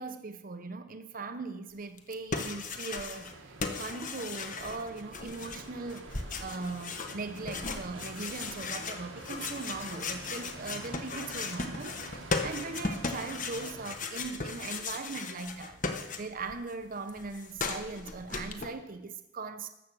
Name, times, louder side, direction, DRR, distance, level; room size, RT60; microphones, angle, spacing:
voice 1, 0.0-15.8 16.2-19.7, right 3 dB, 45° right, 10 dB, 0.7 m, -40 dB
sound 1, 2.0-3.3 3.6-16.6 16.8-18.7, left 4 dB, 40° left, 1.2 m, -37 dB
sound 2, 3.1-14.0, right 2 dB, 85° right, 1.7 m, -47 dB
14.0 x 7.9 x 6.1 m, 0.94 s
head